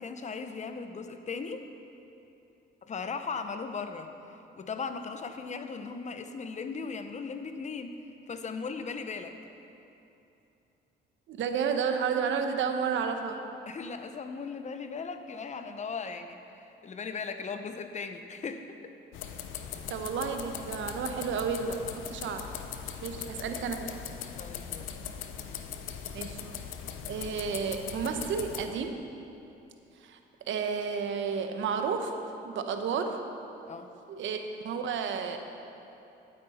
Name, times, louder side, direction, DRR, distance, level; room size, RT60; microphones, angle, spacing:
voice 1, 0.0-1.6 2.8-4.1 4.5-8.0 8.3-9.4 13.7-18.8 24.2-24.9 33.7-33.9, left 5 dB, 35° left, 8 dB, 0.8 m, -38 dB
voice 2, 11.3-13.4 19.9-22.5 23.0-23.9 26.1-26.6 27.1-29.0 30.0-30.2 30.5-32.2 32.4-33.2 34.1-35.4, right 6 dB, 75° right, 6 dB, 0.9 m, -31 dB
sound 1, 19.1-28.7, left 8 dB, 90° left, 0.7 m, -40 dB
11.5 x 9.5 x 4.2 m, 2.9 s
cardioid pair, 90°, 20 cm